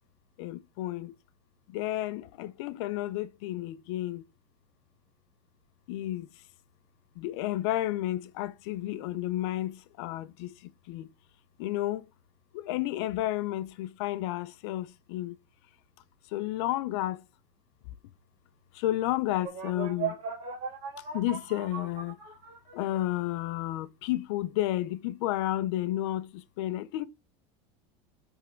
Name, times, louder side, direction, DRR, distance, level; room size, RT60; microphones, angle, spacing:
voice 1, 0.4-1.2 1.7-4.3 5.9-6.4 7.1-11.1 11.6-12.1 12.5-15.4 16.3-17.2 18.7-20.2 21.0-22.2 22.7-27.1, left 14 dB, 70° left, 0.7 m, -32 dB
sound 1, 19.4-23.0, right 6 dB, 40° right, 2.7 m, -37 dB
8.3 x 3.7 x 4.4 m
supercardioid pair, 155°, 15 cm